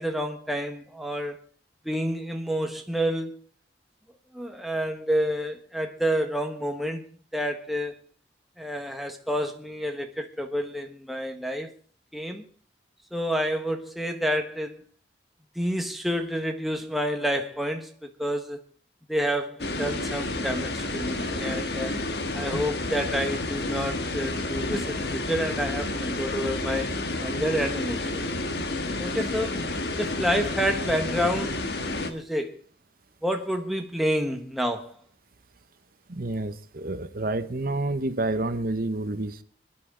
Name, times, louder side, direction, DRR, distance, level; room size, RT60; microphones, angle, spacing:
voice 1, 0.0-1.4 1.8-3.4 4.3-7.0 7.3-7.9 8.6-11.7 12.1-12.4 13.1-14.8 15.5-18.6 19.1-22.0 22.3-28.2 29.0-29.6 30.0-32.6 33.2-34.9, equal, ahead, 1.2 m, -29 dB
sound 1, 19.6-32.1, left 2 dB, 60° left, 1.5 m, -30 dB
voice 2, 36.1-39.4, right 2 dB, 55° right, 0.9 m, -29 dB
26.0 x 11.0 x 3.8 m
head